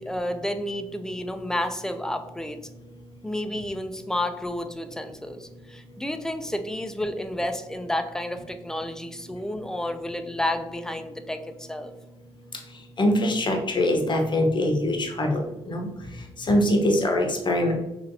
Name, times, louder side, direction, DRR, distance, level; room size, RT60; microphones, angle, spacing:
voice 1, 0.0-2.6 3.2-11.9, left 1 dB, 5° left, 7 dB, 0.4 m, -31 dB
voice 2, 13.0-15.9 16.4-17.7, left 1 dB, 40° left, 3 dB, 0.7 m, -23 dB
3.0 x 2.7 x 2.6 m, 0.96 s
hypercardioid pair, 50°, 13 cm